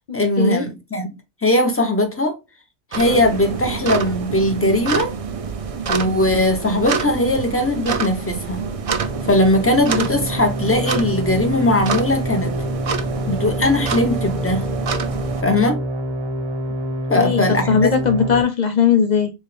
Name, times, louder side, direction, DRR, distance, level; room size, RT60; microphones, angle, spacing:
voice 1, 0.1-1.1 1.4-2.3 2.9-5.1 5.9-8.6 9.2-12.5 13.3-14.6 15.4-15.8 17.1-17.9, left 1 dB, 10° left, 0.9 m, -19 dB
sound 1, 2.9-15.4, right 5 dB, 60° right, 0.3 m, -27 dB
sound 2, 9.0-18.4, equal, 30° right, 0.9 m, -27 dB
voice 2, 17.1-19.3, left 6 dB, 75° left, 0.4 m, -18 dB
4.3 x 3.5 x 3.3 m
omnidirectional pair, 1.4 m